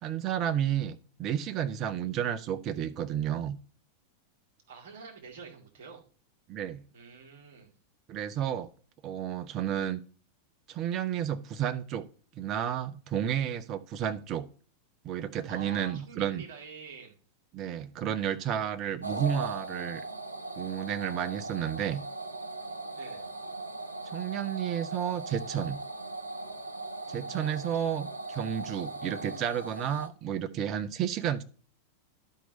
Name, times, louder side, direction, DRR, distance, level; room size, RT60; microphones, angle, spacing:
voice 1, 0.0-3.6 6.5-6.8 8.1-8.7 9.0-10.0 10.7-12.0 12.4-14.5 15.0-16.4 17.5-20.0 20.6-22.0 24.1-25.8 27.1-31.4, right 9 dB, 35° right, 11 dB, 0.7 m, -31 dB
voice 2, 4.7-6.0 6.9-7.7 15.5-17.2 22.9-23.3 27.3-27.6, right 5 dB, 50° right, 0 dB, 2.1 m, -47 dB
sound 1, 19.0-30.1, right 2 dB, 80° right, 0.7 m, -39 dB
11.0 x 4.6 x 4.0 m, 0.40 s
figure-of-eight pair, 90°, 0 cm